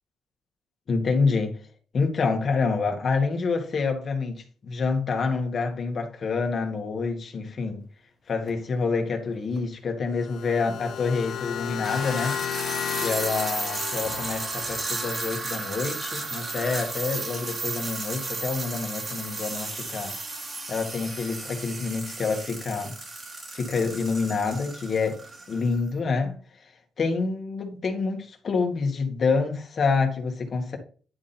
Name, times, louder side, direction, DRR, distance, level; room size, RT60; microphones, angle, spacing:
voice 1, 0.9-1.6 1.9-7.8 8.3-12.4 13.0-20.1 20.7-22.9 23.5-25.2 25.5-26.4 27.0-30.8, left 4 dB, 40° left, 2.0 m, -27 dB
sound 1, 8.4-8.6 9.6-9.7 11.7-25.8, right 3 dB, 35° right, 2.0 m, -34 dB
sound 2, 10.1-15.2, left 9 dB, 65° left, 0.7 m, -33 dB
10.5 x 3.7 x 4.3 m
cardioid pair, 125°, 0 cm